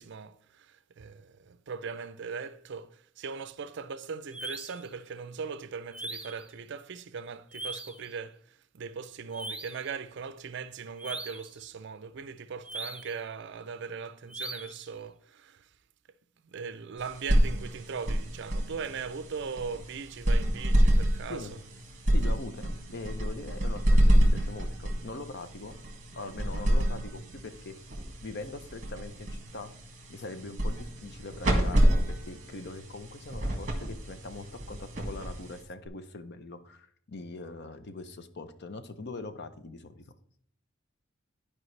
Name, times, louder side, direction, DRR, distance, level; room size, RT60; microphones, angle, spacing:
voice 1, 0.0-15.7 16.4-21.5, right 5 dB, 60° right, 0.5 m, -39 dB
sound 1, 4.3-4.9 5.9-6.5 7.5-8.1 9.3-9.9 11.0-11.5 12.6-13.2 14.3-14.9, right 2 dB, 5° right, 0.5 m, -40 dB
sound 2, 17.0-35.9, equal, 40° right, 1.6 m, -28 dB
voice 2, 22.0-25.8 26.2-27.7 28.2-29.7 30.1-40.0, left 3 dB, 55° left, 0.7 m, -42 dB
12.0 x 4.9 x 3.2 m
head